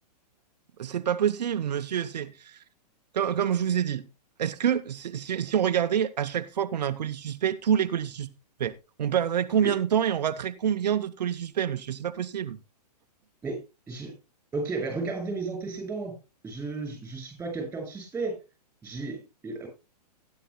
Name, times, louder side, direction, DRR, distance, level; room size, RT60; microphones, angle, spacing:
voice 1, 0.8-2.6 3.1-4.0 4.4-8.3 8.6-8.7 9.0-12.6, right 9 dB, 80° right, 0.7 m, -27 dB
voice 2, 14.5-16.1 16.4-18.4 18.8-19.7, right 3 dB, 10° right, 6.8 m, -33 dB
16.0 x 10.5 x 2.2 m
hypercardioid pair, 130°, 21 cm